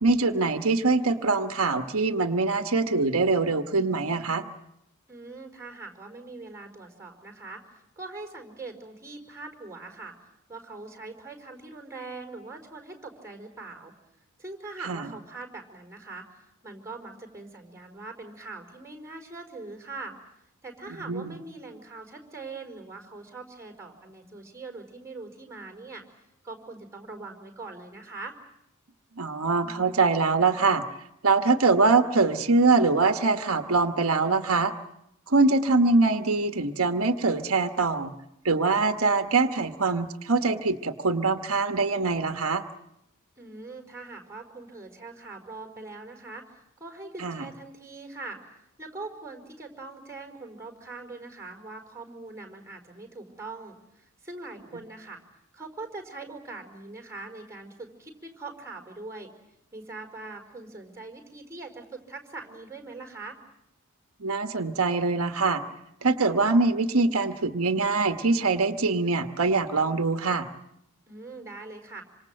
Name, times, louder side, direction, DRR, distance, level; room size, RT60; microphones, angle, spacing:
voice 1, 0.0-4.4 14.8-15.1 21.1-21.3 29.2-30.8 31.2-34.7 35.3-38.1 38.4-42.6 47.2-47.5 64.2-65.6 66.0-70.5, right 3 dB, 75° right, 6 dB, 1.3 m, -23 dB
voice 2, 5.1-10.1 10.5-13.9 14.4-20.1 20.6-26.0 26.4-28.3 43.4-48.4 48.8-55.2 55.5-59.3 59.7-63.4 71.1-72.0, right 3 dB, 15° right, 3 dB, 4.9 m, -42 dB
27.0 x 26.0 x 7.8 m, 0.80 s
head